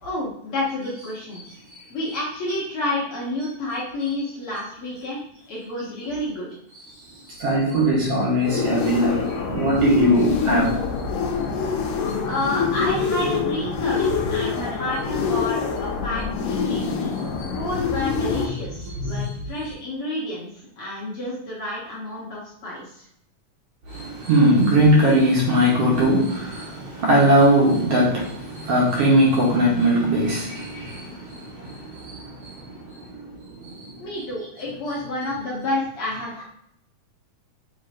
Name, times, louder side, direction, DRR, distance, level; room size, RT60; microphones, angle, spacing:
voice 1, 0.0-1.4 1.9-6.5 12.3-16.9 17.5-23.1 34.0-36.4, left 1 dB, 60° left, -6 dB, 1.5 m, -29 dB
voice 2, 7.4-10.8 17.4-17.5 18.8-19.2 23.9-31.1, right 1 dB, 70° right, -4 dB, 1.5 m, -19 dB
sound 1, 8.4-18.5, left 5 dB, 80° left, 2.1 m, -25 dB
7.2 x 2.8 x 2.5 m, 0.74 s
omnidirectional pair, 3.7 m